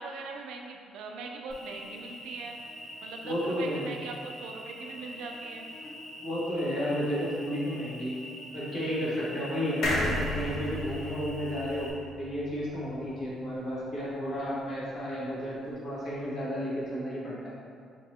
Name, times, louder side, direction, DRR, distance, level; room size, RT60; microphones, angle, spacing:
voice 1, 0.0-2.6 3.0-5.7, right 3 dB, 85° right, 2 dB, 0.4 m, -41 dB
Cricket, 1.5-11.9, left 1 dB, 10° left, 0.8 m, -44 dB
voice 2, 3.2-3.9 6.2-8.2 8.5-11.9 12.2-17.5, equal, 50° left, -7 dB, 1.2 m, -32 dB
sound 1, 9.8-13.3 13.7-13.8 14.0-14.1, left 1 dB, 70° left, 0.7 m, -33 dB
4.4 x 2.8 x 3.0 m, 2.3 s
cardioid pair, 130°, 0 cm